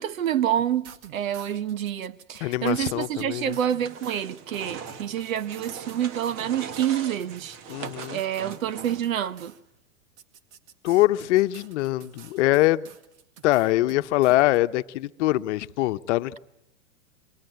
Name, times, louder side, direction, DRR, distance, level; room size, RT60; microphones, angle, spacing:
voice 1, 0.0-7.6 8.1-9.5, right 10 dB, 80° right, 1.2 m, -28 dB
sound 1, 0.6-9.6 10.2-14.6, right 8 dB, 60° right, 2.1 m, -50 dB
voice 2, 2.4-3.6 7.7-8.2 10.8-12.9 13.4-16.4, left 17 dB, 60° left, 1.0 m, -23 dB
sound 2, 3.8-9.2, right 6 dB, 40° right, 2.0 m, -40 dB
27.5 x 23.5 x 9.3 m
hypercardioid pair, 120°, 40 cm